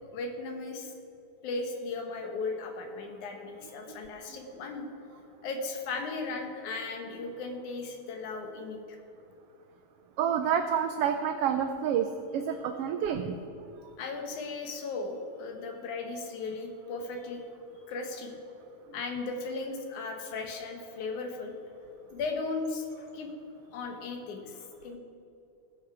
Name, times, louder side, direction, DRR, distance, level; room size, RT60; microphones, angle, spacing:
voice 1, 0.1-0.9 1.4-4.9 5.4-9.0 14.0-17.4 17.9-18.3 18.9-21.5 22.1-23.3 23.7-25.0, left 3 dB, 85° left, 3 dB, 2.7 m, -36 dB
voice 2, 10.2-12.1 12.3-13.4, right 8 dB, 85° right, 7 dB, 1.3 m, -28 dB
18.5 x 7.3 x 4.8 m, 2.7 s
omnidirectional pair, 3.4 m